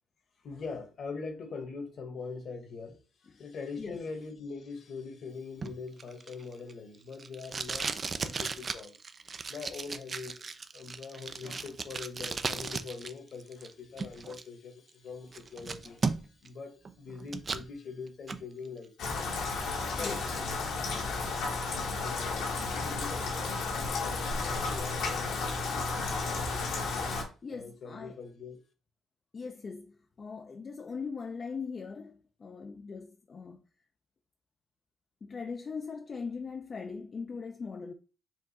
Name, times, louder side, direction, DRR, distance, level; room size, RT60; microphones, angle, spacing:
voice 1, 0.4-3.0 3.3-7.9 8.2-8.9 9.5-10.3 10.7-19.2 19.9-20.1 22.0-22.4 22.7-25.5 27.5-28.6, left 4 dB, 60° left, 1.2 m, -43 dB
Packing tape duct tape, 5.6-13.1 13.4-14.4 14.9-15.0 15.3-16.5 16.8-17.7 18.1-18.4, right 4 dB, 40° right, 0.4 m, -36 dB
Rain, 19.0-27.2, left 3 dB, 85° left, 1.5 m, -33 dB
voice 2, 27.4-28.2 29.3-33.6 35.2-37.9, left 5 dB, 40° left, 0.5 m, -40 dB
4.5 x 2.5 x 4.1 m
cardioid pair, 90°, 0 cm